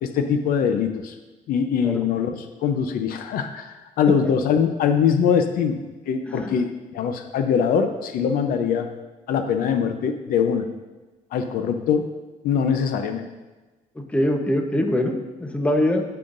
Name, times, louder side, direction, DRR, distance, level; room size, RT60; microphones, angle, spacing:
voice 1, 0.0-1.1 1.5-5.8 6.1-8.9 9.3-10.7 11.3-12.1 12.4-13.3, left 7 dB, 80° left, 7 dB, 0.7 m, -22 dB
voice 2, 14.0-16.0, left 1 dB, 10° left, 4 dB, 0.9 m, -23 dB
16.5 x 5.8 x 2.6 m, 1.2 s
cardioid pair, 120°, 15 cm